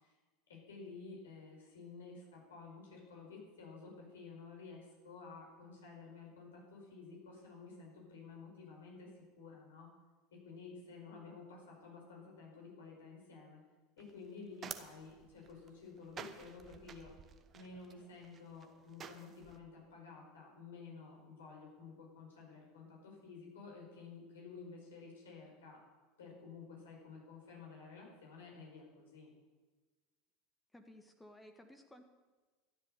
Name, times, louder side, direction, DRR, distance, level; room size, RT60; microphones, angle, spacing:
voice 1, 0.5-9.9 10.4-13.6 14.0-17.1 17.5-25.8 26.2-29.3, left 4 dB, 70° left, -1 dB, 5.2 m, -52 dB
sound 1, 14.0-19.6, right 7 dB, 35° right, 1.2 m, -52 dB
voice 2, 30.7-32.1, left 1 dB, 10° left, 5 dB, 1.5 m, -57 dB
13.5 x 10.5 x 6.7 m, 1.3 s
figure-of-eight pair, 75°, 0 cm